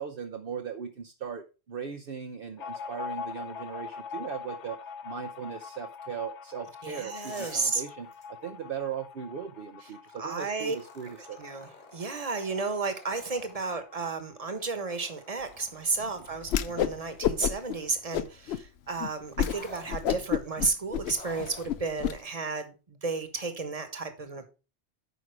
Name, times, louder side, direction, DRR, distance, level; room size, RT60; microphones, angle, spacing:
voice 1, 0.0-4.8 5.0-11.4 16.0-16.1 16.7-16.8, right 7 dB, 55° right, 0.9 m, -38 dB
sound 1, 2.6-15.7 16.0-16.1 16.4-17.1, left 6 dB, 90° left, 1.3 m, -44 dB
voice 2, 6.8-7.8 9.8-9.9 10.2-10.8 11.0-24.5, right 4 dB, 35° right, 1.4 m, -33 dB
sound 2, 7.1-7.8 8.1-8.3 10.6-13.7 14.6-18.3 19.5-19.9 21.1-21.7 22.6-22.7, left 1 dB, 50° left, 3.0 m, -51 dB
Whoosh swoosh swish, 16.5-17.0 17.2-17.7 18.1-18.6 19.0-19.1 19.4-19.6 19.9-22.1, left 10 dB, 70° left, 0.8 m, -28 dB
9.5 x 5.4 x 4.7 m
omnidirectional pair, 1.2 m